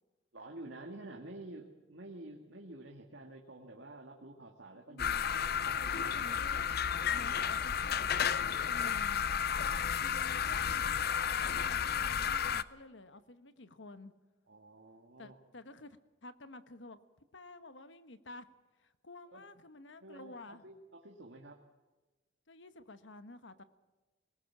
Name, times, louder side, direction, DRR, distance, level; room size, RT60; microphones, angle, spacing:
voice 1, 0.3-6.4 7.0-7.8 14.5-15.4 19.3-19.4 20.0-21.6, right 2 dB, 75° right, 1 dB, 2.2 m, -50 dB
voice 2, 4.7-5.2 6.0-6.7 7.1-9.2 9.9-14.1 15.2-17.0 17.3-18.5 18.8-20.7 22.5-23.6, left 2 dB, 80° left, 11 dB, 1.4 m, -51 dB
sound 1, 5.0-12.6, left 8 dB, 60° left, 0.7 m, -32 dB
21.0 x 19.5 x 7.4 m, 1.2 s
head